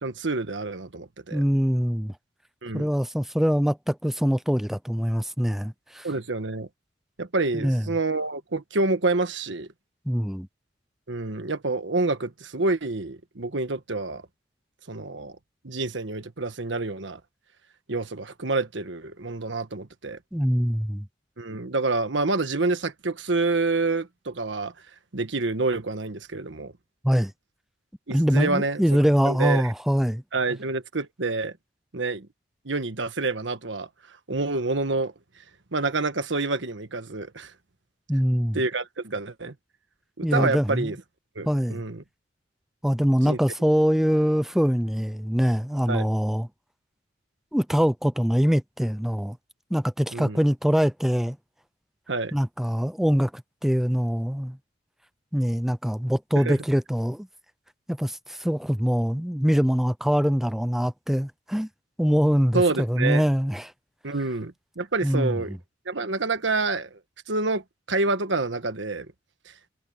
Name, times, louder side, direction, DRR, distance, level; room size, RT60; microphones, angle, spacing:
voice 1, 0.0-1.4 2.6-2.9 6.0-6.7 7.2-9.7 11.1-14.2 14.9-15.4 15.6-17.2 17.9-20.2 21.4-24.7 25.1-26.7 28.1-28.8 29.2-29.6 30.3-31.5 31.9-32.3 32.6-33.9 34.3-35.1 35.7-37.5 38.5-39.5 40.2-41.0 41.3-42.0 43.2-43.4 45.9-46.1 50.1-50.4 52.1-52.4 56.4-56.6 62.5-63.2 64.0-65.6 65.8-67.0 67.3-69.1, right 3 dB, 80° right, 1.4 m, -27 dB
voice 2, 1.3-2.1 2.7-6.1 7.5-7.9 10.1-10.5 20.3-21.1 27.0-27.3 28.1-30.2 38.1-38.6 40.2-40.9 41.5-41.8 42.8-46.5 47.5-49.4 49.7-51.4 52.3-54.6 55.3-57.3 57.9-61.7 62.0-63.7 65.0-65.6, equal, ahead, 0.5 m, -23 dB
head